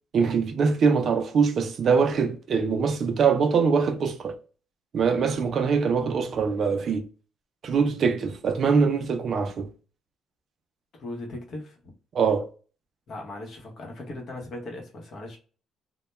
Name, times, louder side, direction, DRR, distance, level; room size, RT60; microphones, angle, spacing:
voice 1, 0.1-4.4 4.9-7.1 7.6-9.7 12.1-12.5, right 5 dB, 45° right, 0.4 m, -23 dB
voice 2, 10.9-11.8 13.1-15.4, left 2 dB, 50° left, 0.8 m, -38 dB
2.2 x 2.1 x 2.9 m
cardioid pair, 140°, 0 cm